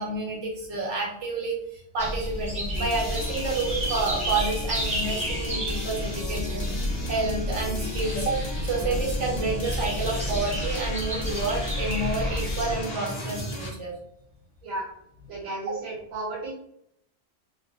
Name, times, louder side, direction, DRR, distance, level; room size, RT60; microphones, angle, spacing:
voice 1, 0.0-13.9 15.7-15.8, right 3 dB, 65° right, -2 dB, 1.0 m, -29 dB
sound 1, 2.0-12.7, equal, 10° right, 0.3 m, -30 dB
sound 2, 2.7-13.7, left 2 dB, 75° left, 0.3 m, -36 dB
voice 2, 15.3-16.5, right 2 dB, 85° right, -3 dB, 1.2 m, -33 dB
2.5 x 2.0 x 2.6 m, 0.74 s
omnidirectional pair, 1.4 m